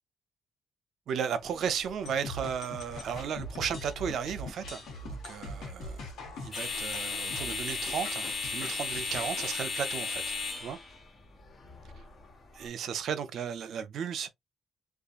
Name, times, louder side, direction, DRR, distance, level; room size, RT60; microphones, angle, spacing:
voice 1, 1.1-6.1 6.4-10.3 10.6-10.8 12.6-14.3, right 7 dB, 70° right, 0.5 m, -35 dB
sound 1, 1.4-12.7, left 4 dB, 45° left, 1.1 m, -38 dB
sound 2, 2.1-9.6, left 2 dB, 85° left, 1.1 m, -42 dB
2.7 x 2.3 x 2.4 m
cardioid pair, 90°, 0 cm